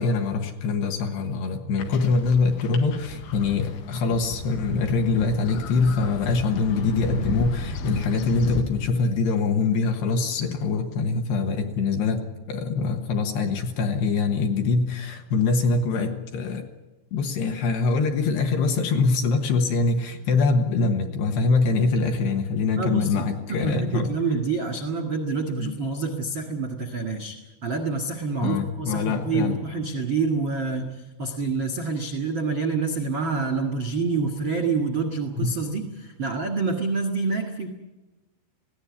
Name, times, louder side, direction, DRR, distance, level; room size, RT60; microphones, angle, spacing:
voice 1, 0.0-12.2 12.5-16.6 17.1-24.1 25.6-25.7 28.4-29.6 35.4-35.5, left 4 dB, 65° left, 4 dB, 3.0 m, -24 dB
sound 1, 1.8-8.6, left 2 dB, 90° left, 4.4 m, -33 dB
voice 2, 22.7-27.3 27.6-37.7, right 4 dB, 60° right, 5 dB, 1.2 m, -27 dB
20.5 x 16.5 x 9.7 m, 1.1 s
omnidirectional pair, 5.7 m